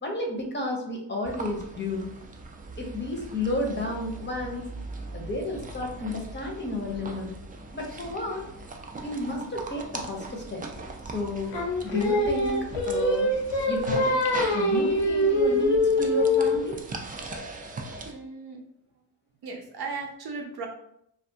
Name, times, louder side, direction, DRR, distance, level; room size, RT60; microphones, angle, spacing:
voice 1, 0.0-2.1 2.8-4.7 5.1-7.3 7.7-8.4 9.0-10.6 11.0-11.6 11.8-13.3 13.7-14.2 14.5-16.8, left 2 dB, 25° left, 1 dB, 0.6 m, -32 dB
sound 1, 1.2-18.1, right 3 dB, 20° right, 0.3 m, -40 dB
Singing, 11.5-16.7, left 1 dB, 75° left, 0.6 m, -24 dB
voice 2, 18.0-18.6 19.4-20.7, right 4 dB, 60° right, 1 dB, 0.6 m, -36 dB
2.4 x 2.3 x 2.6 m, 0.75 s
cardioid pair, 65°, 43 cm